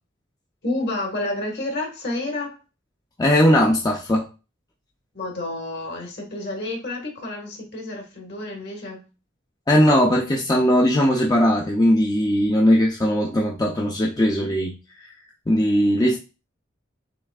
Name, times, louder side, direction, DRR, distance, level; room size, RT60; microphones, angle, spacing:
voice 1, 0.6-2.6 5.1-9.0, left 2 dB, 55° left, 1.6 m, -30 dB
voice 2, 3.2-4.3 9.7-15.1 15.5-16.2, equal, 20° left, 0.5 m, -19 dB
6.8 x 3.1 x 2.4 m
head